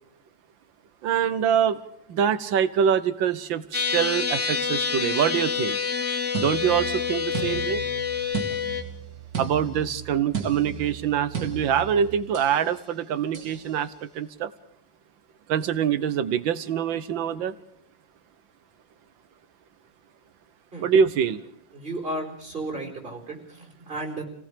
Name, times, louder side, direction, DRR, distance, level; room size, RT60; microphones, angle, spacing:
voice 1, 1.0-1.8 2.1-5.8 6.4-7.8 9.4-14.5 15.5-17.5 20.8-21.4, right 8 dB, 80° right, 13 dB, 1.7 m, -24 dB
sound 1, 3.7-8.8, left 6 dB, 40° left, 1.6 m, -27 dB
sound 2, 6.3-12.6 13.3-13.6, right 6 dB, 50° right, 2.8 m, -35 dB
voice 2, 21.7-24.2, right 1 dB, 30° right, 0 dB, 4.8 m, -34 dB
29.0 x 18.0 x 5.1 m, 0.74 s
omnidirectional pair, 2.1 m